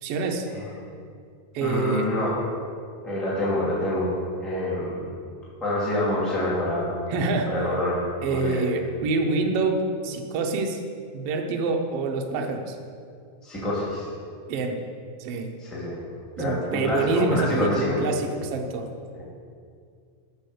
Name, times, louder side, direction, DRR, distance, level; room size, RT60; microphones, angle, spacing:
voice 1, 0.0-0.5 1.5-2.1 7.1-7.5 8.2-10.8 11.1-12.8 14.5-14.8 15.2-15.5 16.4-18.8, right 3 dB, 70° right, 2 dB, 1.6 m, -26 dB
voice 2, 1.6-2.4 3.0-4.1 4.4-5.1 5.6-6.9 7.5-8.0 8.3-8.6 13.4-14.1 15.6-16.0 16.4-18.0 19.1-19.2, left 1 dB, ahead, -8 dB, 1.9 m, -26 dB
8.3 x 6.3 x 6.7 m, 2.3 s
omnidirectional pair, 3.5 m